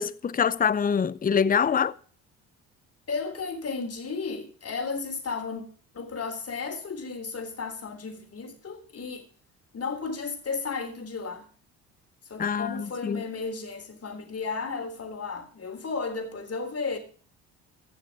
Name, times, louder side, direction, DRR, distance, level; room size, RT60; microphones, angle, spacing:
voice 1, 0.0-1.9 12.4-13.3, left 7 dB, 25° left, 0.6 m, -25 dB
voice 2, 3.1-5.6 5.9-9.2 9.7-11.5 12.3-17.0, left 4 dB, 40° left, 3.6 m, -34 dB
15.5 x 6.5 x 6.2 m
supercardioid pair, 70°, 37 cm